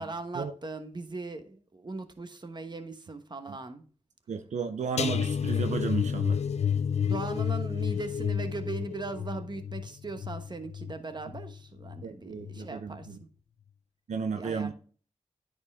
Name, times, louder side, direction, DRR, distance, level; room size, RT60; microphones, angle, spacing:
voice 1, 0.0-3.8 7.0-13.1 14.3-14.7, right 3 dB, 40° right, 1.1 m, -39 dB
voice 2, 4.3-6.4 12.0-13.2 14.1-14.7, right 6 dB, 80° right, 0.6 m, -33 dB
sound 1, 5.0-12.0 12.4-12.7 13.0-13.2, left 7 dB, 65° left, 0.4 m, -31 dB
9.8 x 4.4 x 3.6 m
cardioid pair, 45°, 12 cm